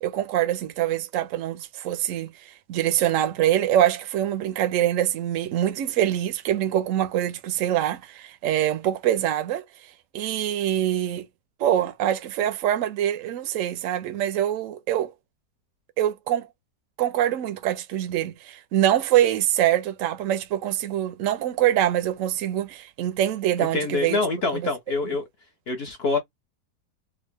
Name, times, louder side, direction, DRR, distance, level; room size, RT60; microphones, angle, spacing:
voice 1, 0.0-2.3 2.7-9.6 10.1-11.3 11.6-15.1 16.0-16.5 17.0-24.2 24.5-24.6, right 11 dB, 65° right, 0.9 m, -24 dB
voice 2, 23.6-25.3 25.7-26.2, left 3 dB, 50° left, 0.7 m, -26 dB
3.5 x 2.1 x 3.4 m
omnidirectional pair, 1.8 m